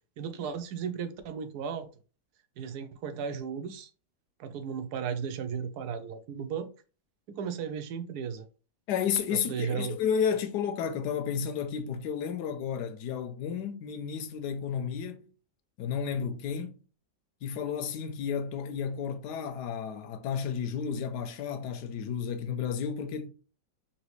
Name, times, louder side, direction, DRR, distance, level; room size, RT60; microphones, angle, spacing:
voice 1, 0.2-1.9 2.6-3.9 4.4-6.7 7.3-8.5 9.3-10.0, right 7 dB, 75° right, 1.1 m, -35 dB
voice 2, 8.9-15.3 15.8-16.7 17.4-23.3, left 7 dB, 80° left, 1.2 m, -32 dB
4.0 x 2.9 x 3.1 m
omnidirectional pair, 1.8 m